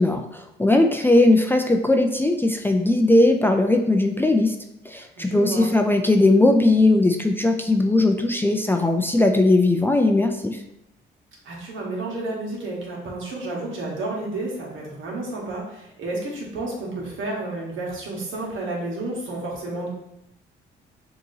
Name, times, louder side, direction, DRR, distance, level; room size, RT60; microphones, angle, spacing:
voice 1, 0.0-4.5 4.9-10.6, left 2 dB, 10° left, 4 dB, 0.4 m, -19 dB
voice 2, 5.2-5.7 11.4-19.9, right 2 dB, 75° right, -3 dB, 1.5 m, -31 dB
6.1 x 2.9 x 2.7 m, 0.85 s
cardioid pair, 90°, 20 cm